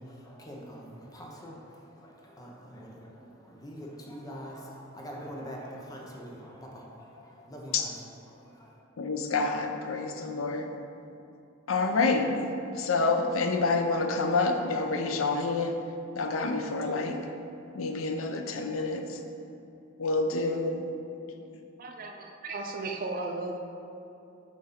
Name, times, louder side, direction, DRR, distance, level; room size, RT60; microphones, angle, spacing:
voice 1, 0.0-7.9 8.3-8.8, equal, 20° left, -2 dB, 0.7 m, -44 dB
voice 2, 9.0-10.7 11.7-15.8 16.1-17.3 17.7-19.2 20.0-20.9, left 3 dB, 90° left, 5 dB, 0.5 m, -28 dB
voice 3, 21.8-23.6, right 3 dB, 45° right, 3 dB, 0.4 m, -35 dB
7.2 x 2.6 x 5.6 m, 2.7 s
head